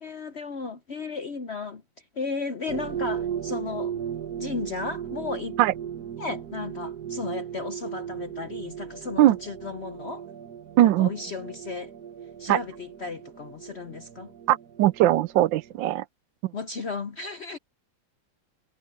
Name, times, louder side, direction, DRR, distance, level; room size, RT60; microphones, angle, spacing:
voice 1, 0.0-1.8 2.1-3.9 4.4-5.6 6.2-10.2 10.8-11.9 12.4-14.3 16.5-17.6, left 4 dB, 55° left, 0.7 m, -34 dB
sound 1, 2.7-15.8, right 9 dB, 55° right, 1.5 m, -37 dB
voice 2, 10.8-11.1 12.5-12.6 14.5-16.0, right 14 dB, 80° right, 1.2 m, -20 dB
omnidirectional pair, 2.1 m